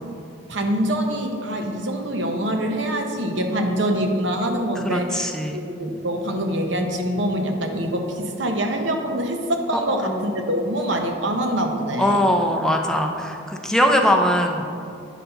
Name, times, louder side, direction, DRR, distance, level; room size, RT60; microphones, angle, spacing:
voice 1, 0.5-12.2, right 1 dB, 65° right, 3 dB, 0.8 m, -25 dB
voice 2, 4.7-5.6 9.7-10.2 12.0-14.7, equal, 5° left, 2 dB, 0.5 m, -21 dB
9.3 x 4.1 x 5.7 m, 2.6 s
head